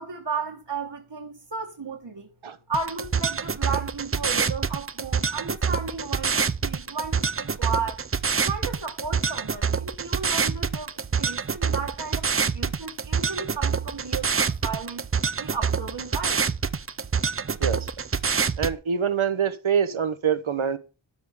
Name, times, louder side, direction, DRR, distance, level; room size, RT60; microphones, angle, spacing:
voice 1, 0.0-2.3 2.7-8.0 8.4-15.0 15.4-16.4, right 5 dB, 60° right, 1.4 m, -34 dB
sound 1, 2.7-18.7, right 5 dB, 30° right, 0.5 m, -26 dB
voice 2, 18.6-20.8, right 7 dB, 80° right, 1.0 m, -25 dB
12.5 x 4.9 x 3.6 m
wide cardioid pair, 45°, 48 cm